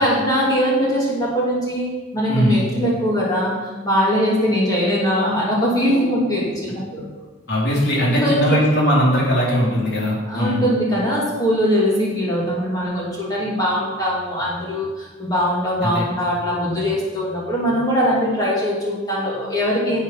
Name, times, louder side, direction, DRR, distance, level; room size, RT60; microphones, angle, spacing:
voice 1, 0.0-7.0 8.1-8.6 10.3-20.0, equal, 20° left, -5 dB, 2.5 m, -21 dB
voice 2, 2.3-2.6 7.5-10.6 15.8-16.0, equal, 55° left, -4 dB, 3.3 m, -19 dB
11.0 x 7.8 x 5.7 m, 1.3 s
head